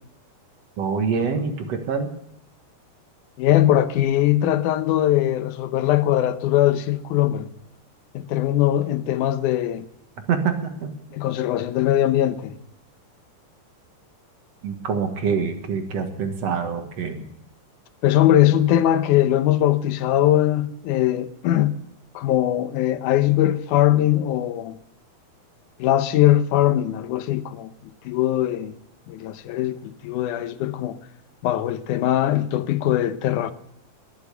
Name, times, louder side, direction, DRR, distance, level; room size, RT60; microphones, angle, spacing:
voice 1, 0.8-2.1 10.3-10.9 14.6-17.3, right 6 dB, 60° right, 2.6 m, -25 dB
voice 2, 3.4-7.5 8.1-9.9 11.1-12.6 18.0-21.8 22.1-24.8 25.8-27.7 28.0-28.7 29.1-31.0 31.4-33.5, left 12 dB, 90° left, 2.3 m, -21 dB
21.0 x 8.6 x 6.9 m
omnidirectional pair, 3.5 m